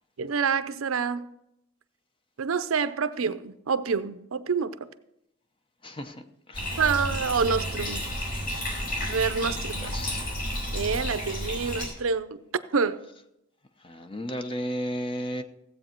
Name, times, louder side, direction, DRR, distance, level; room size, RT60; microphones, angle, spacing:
voice 1, 0.2-1.2 2.4-4.9 6.8-8.1 9.0-10.2 10.7-12.4 12.7-13.0, right 5 dB, 85° right, 13 dB, 0.6 m, -27 dB
voice 2, 5.8-6.1 6.5-6.8 9.9-10.2 13.8-15.4, equal, 25° left, 8 dB, 0.7 m, -33 dB
Bathtub (filling or washing), 6.5-11.9, equal, 45° left, 4.5 m, -31 dB
16.0 x 8.2 x 4.4 m, 0.85 s
head